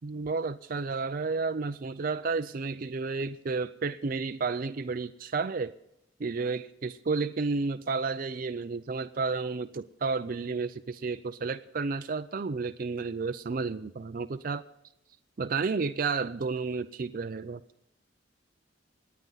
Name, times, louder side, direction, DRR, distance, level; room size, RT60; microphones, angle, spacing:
voice 1, 0.0-5.7 6.2-14.6 15.4-17.6, right 4 dB, 45° right, 9 dB, 0.5 m, -31 dB
27.0 x 9.4 x 4.0 m, 0.81 s
head